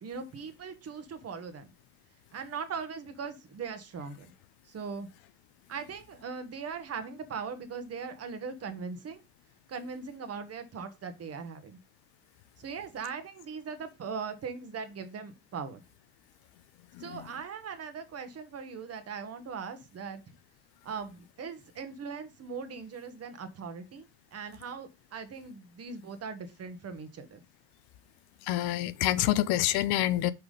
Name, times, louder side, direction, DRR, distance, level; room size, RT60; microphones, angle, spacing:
voice 1, 0.0-1.7 2.3-4.3 4.6-5.1 5.7-9.2 9.7-11.8 12.6-15.8 17.0-20.2 20.8-24.1 24.3-27.4, right 5 dB, 35° right, 1.3 m, -40 dB
voice 2, 28.5-30.3, left 14 dB, 60° left, 0.7 m, -26 dB
5.9 x 3.8 x 4.9 m
supercardioid pair, 95°, 43 cm